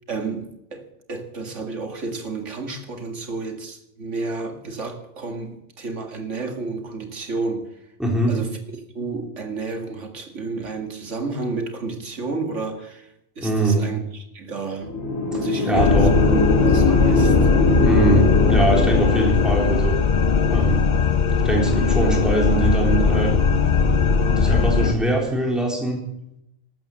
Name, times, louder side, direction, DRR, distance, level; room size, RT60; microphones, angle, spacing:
voice 1, 0.1-7.7 8.3-8.6 8.9-14.9 15.3-16.2 16.7-17.5, right 3 dB, 65° right, 2.5 m, -31 dB
voice 2, 8.0-8.3 13.4-13.8 15.7-16.1 17.8-20.0 20.5-20.8 21.4-23.3 24.2-26.0, right 2 dB, ahead, 3.8 m, -22 dB
sound 1, 14.8-19.8, left 2 dB, 75° left, 3.2 m, -21 dB
sound 2, 15.7-24.9, left 5 dB, 45° left, 0.7 m, -19 dB
13.0 x 12.5 x 7.5 m
omnidirectional pair, 1.4 m